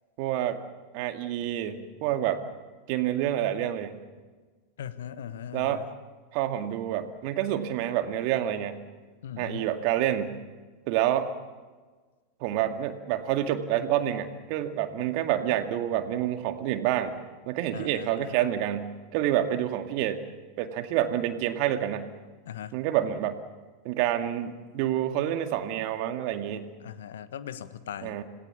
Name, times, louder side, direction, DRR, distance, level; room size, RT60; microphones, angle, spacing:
voice 1, 0.2-0.6 0.9-2.4 2.9-4.0 5.5-5.8 6.3-8.8 9.4-10.3 10.9-11.3 12.4-17.2 17.5-20.2 20.6-22.0 22.7-23.4 23.8-26.7 28.0-28.2, right 11 dB, 50° right, 7 dB, 2.1 m, -28 dB
voice 2, 4.8-5.9 9.2-9.7 17.7-18.3 22.4-22.8 26.8-28.2, left 9 dB, 65° left, 13 dB, 1.4 m, -39 dB
27.0 x 19.0 x 7.3 m, 1.4 s
figure-of-eight pair, 85°, 0 cm